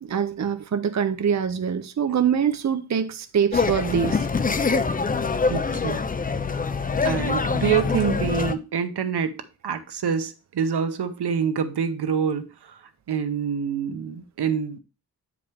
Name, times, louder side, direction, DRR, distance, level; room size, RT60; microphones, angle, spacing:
voice 1, 0.0-4.3, right 7 dB, 45° right, 0.6 m, -24 dB
sound 1, 3.5-8.5, left 4 dB, 25° left, 0.4 m, -24 dB
voice 2, 5.5-6.0 7.0-12.8 13.1-14.8, right 7 dB, 85° right, 0.9 m, -26 dB
8.3 x 5.0 x 3.4 m
wide cardioid pair, 150°, 38 cm